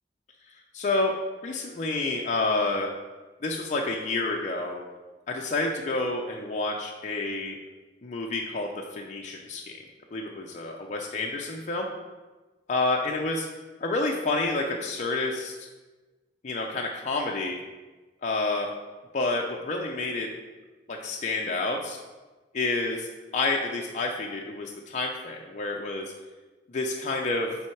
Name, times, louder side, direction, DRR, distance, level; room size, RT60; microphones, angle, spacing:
voice 1, 0.7-1.1 1.4-2.9 3.4-4.8 5.3-7.6 8.0-9.8 10.1-11.9 12.7-13.5 13.8-15.7 16.4-17.6 18.2-18.7 19.1-20.3 20.9-22.0 22.5-23.1 23.3-26.1 26.7-27.6, left 2 dB, 40° left, 0 dB, 0.5 m, -29 dB
7.6 x 3.5 x 4.5 m, 1.3 s
head